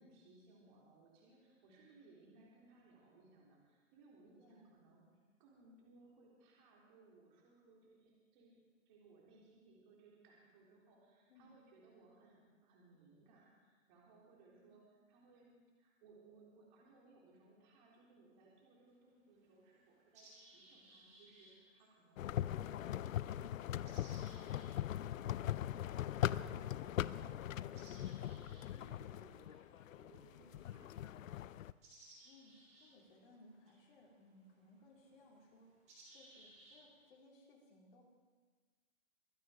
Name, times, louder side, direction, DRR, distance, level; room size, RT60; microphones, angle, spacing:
voice 1, 0.0-5.1 5.4-8.6 8.9-15.5 15.8-24.7 25.8-31.4, right 3 dB, 35° right, -4 dB, 3.7 m, -65 dB
sound 1, 17.9-18.0 18.9-19.0 19.4-37.1, right 1 dB, 15° right, 3.5 m, -65 dB
sound 2, 22.2-31.7, left 11 dB, 70° left, 0.6 m, -40 dB
voice 2, 30.3-31.1 32.2-35.7 36.1-38.0, left 1 dB, 40° left, -2 dB, 3.9 m, -64 dB
23.5 x 8.5 x 5.1 m, 1.4 s
hypercardioid pair, 160°, 41 cm